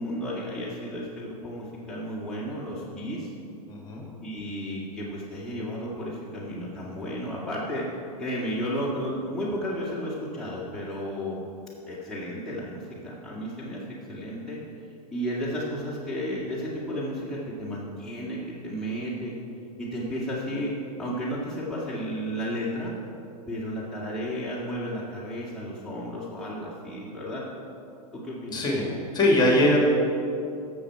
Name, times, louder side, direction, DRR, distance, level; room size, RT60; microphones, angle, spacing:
voice 1, 0.0-3.3 4.2-7.9 8.2-11.4 11.8-13.8 14.1-14.6 15.1-19.4 19.8-22.9 23.5-27.5 28.1-28.6, equal, ahead, -8 dB, 2.1 m, -33 dB
voice 2, 3.7-4.0 28.5-29.8, left 1 dB, 20° left, -1 dB, 2.4 m, -22 dB
12.5 x 7.0 x 4.7 m, 2.6 s
hypercardioid pair, 110°, 21 cm